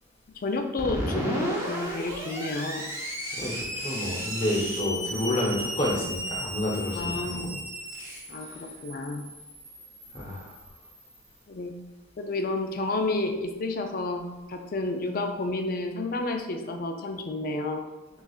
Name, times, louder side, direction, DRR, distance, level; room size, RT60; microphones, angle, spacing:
voice 1, 0.4-2.8 6.9-7.6 8.3-9.2 11.5-11.7 12.2-17.9, left 2 dB, 45° left, 5 dB, 0.4 m, -30 dB
Screech, 0.8-11.2, equal, 10° right, 0.6 m, -35 dB
voice 2, 3.4-7.5 8.4-8.5 10.1-10.5, left 1 dB, 25° left, -3 dB, 0.8 m, -29 dB
6.3 x 2.3 x 2.4 m, 1.1 s
head